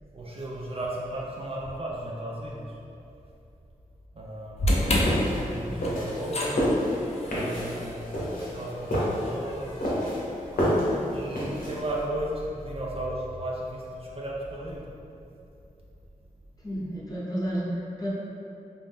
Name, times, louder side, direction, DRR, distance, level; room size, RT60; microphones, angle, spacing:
voice 1, 0.1-2.8 4.1-6.8 7.3-10.1 10.5-10.7 11.1-14.9, right 1 dB, 40° right, -4 dB, 0.4 m, -35 dB
sound 1, 4.6-10.8, left 1 dB, 50° left, 0.4 m, -31 dB
sound 2, 5.1-12.0, equal, 80° left, 0.7 m, -28 dB
voice 2, 16.6-18.1, equal, 25° left, -8 dB, 0.9 m, -32 dB
2.6 x 2.0 x 3.4 m, 2.7 s
cardioid pair, 55°, 14 cm